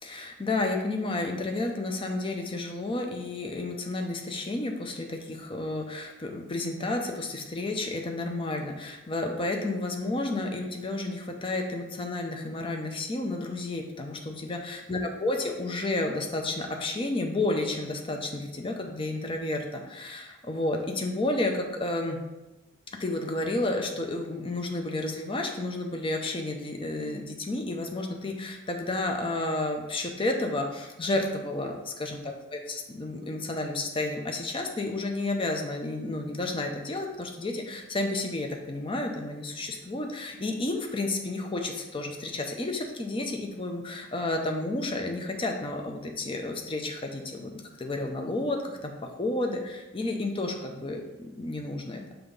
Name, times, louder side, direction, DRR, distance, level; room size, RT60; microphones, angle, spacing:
voice 1, 0.0-22.2 23.0-47.5 47.8-48.9 49.2-52.1, left 2 dB, 25° left, 2 dB, 0.5 m, -31 dB
5.6 x 3.5 x 5.2 m, 1.1 s
head